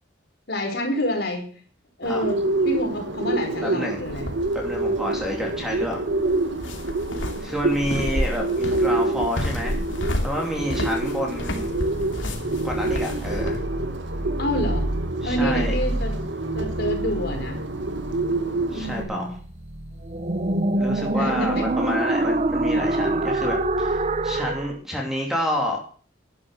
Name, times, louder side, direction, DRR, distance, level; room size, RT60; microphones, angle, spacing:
voice 1, 0.5-1.6 2.0-2.4 2.6-4.3 14.4-14.9 15.2-16.2 16.5-17.6 18.6-19.4 21.1-21.7, equal, 60° left, 3 dB, 4.7 m, -28 dB
Bird, 2.0-19.0, right 2 dB, 70° right, 2.1 m, -27 dB
voice 2, 3.6-4.0 4.5-6.0 7.4-9.8 10.2-11.7 12.6-13.6 15.2-15.8 18.7-19.4 20.8-25.8, left 1 dB, ahead, 0 dB, 3.0 m, -29 dB
sound 1, 4.1-13.6, left 1 dB, 90° left, 2.8 m, -31 dB
sound 2, 11.6-24.7, right 2 dB, 35° right, 0.9 m, -27 dB
12.0 x 11.0 x 6.6 m, 0.42 s
head